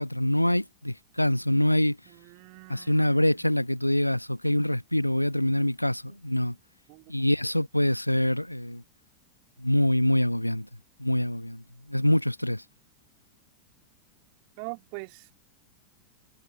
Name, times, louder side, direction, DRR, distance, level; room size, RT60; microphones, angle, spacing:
voice 1, 0.0-2.0 2.7-6.5 7.1-8.8 9.6-10.7 11.0-11.6 11.9-12.6, left 1 dB, 90° left, 1.2 m, -25 dB
voice 2, 2.1-3.3 6.9-7.1 14.6-15.3, right 40 dB or more, 45° right, 2.6 m, -42 dB
figure-of-eight pair, 90°, 0 cm